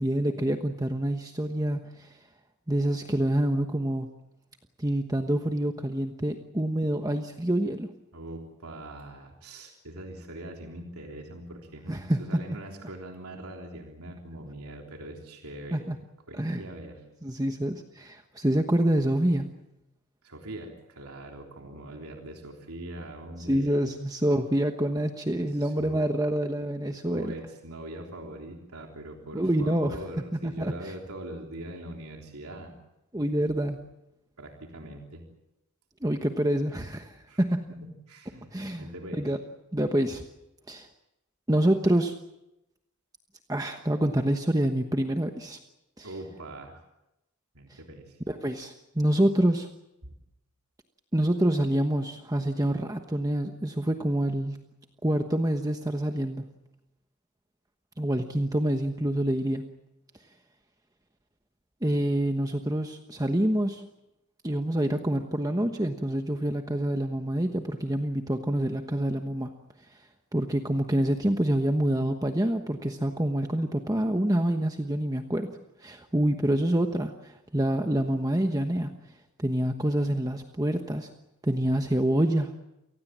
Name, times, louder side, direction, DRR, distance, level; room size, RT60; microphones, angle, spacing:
voice 1, 0.0-2.2 2.7-4.1 4.8-7.9 11.9-12.6 15.7-16.0 16.3-16.6 17.2-19.5 23.5-27.3 29.3-30.0 30.4-30.9 33.1-33.8 36.0-37.7 38.5-38.9 39.1-39.4 39.7-40.2 40.7-40.9 41.5-42.1 43.5-45.6 46.0-46.1 47.7-47.8 48.3-49.7 51.1-54.6 55.0-56.5 58.0-59.7 61.8-63.8 64.4-69.6 69.9-70.0 70.3-75.5 75.8-78.9 79.4-81.1 81.4-82.5, right 1 dB, 15° right, 5 dB, 1.1 m, -27 dB
voice 2, 8.1-15.9 16.3-17.0 20.2-23.9 25.6-26.1 26.9-32.7 34.4-35.3 37.3-37.4 37.7-39.3 46.0-46.8 47.6-48.2 50.0-50.1, right 1 dB, 85° right, 2 dB, 3.5 m, -42 dB
28.5 x 19.5 x 7.5 m, 0.90 s
head